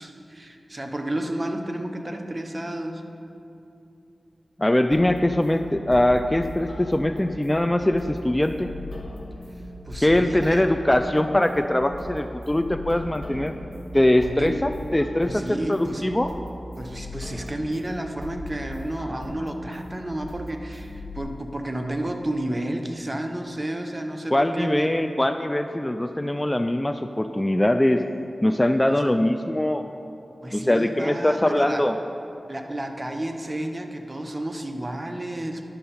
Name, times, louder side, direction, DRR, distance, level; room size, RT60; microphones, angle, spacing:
voice 1, 0.0-3.0 9.8-10.7 14.2-14.7 15.2-16.1 16.8-25.0 28.9-29.0 30.4-31.8 32.5-35.6, right 1 dB, 30° right, 4 dB, 0.9 m, -31 dB
voice 2, 4.6-8.7 10.0-13.5 13.9-16.3 24.3-28.0 28.4-29.9 30.5-31.9, left 1 dB, 20° left, 8 dB, 0.4 m, -22 dB
sound 1, 4.9-21.2, left 1 dB, 55° left, 1.1 m, -38 dB
11.0 x 6.5 x 4.3 m, 2.7 s
cardioid pair, 40°, 0 cm